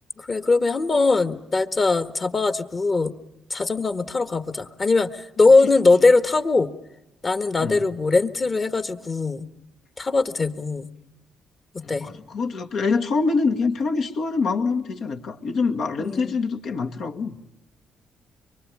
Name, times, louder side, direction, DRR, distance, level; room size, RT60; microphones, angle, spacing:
voice 1, 0.2-3.1 3.5-6.7 7.2-9.5 10.0-10.9 11.7-12.1 16.0-16.3, left 3 dB, 35° left, 12 dB, 1.6 m, -21 dB
voice 2, 11.8-17.4, left 4 dB, 70° left, 3 dB, 2.1 m, -25 dB
24.5 x 24.0 x 8.7 m, 0.91 s
cardioid pair, 90°, 0 cm